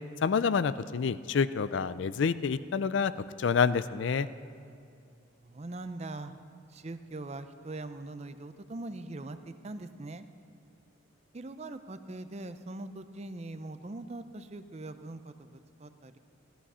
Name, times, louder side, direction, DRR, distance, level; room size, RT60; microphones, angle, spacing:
voice 1, 0.2-3.1 3.4-4.3, left 6 dB, 60° left, 15 dB, 0.4 m, -27 dB
voice 2, 5.4-6.3 6.7-10.3 11.3-16.2, right 2 dB, 30° right, 10 dB, 0.5 m, -42 dB
16.5 x 12.5 x 5.6 m, 2.5 s
head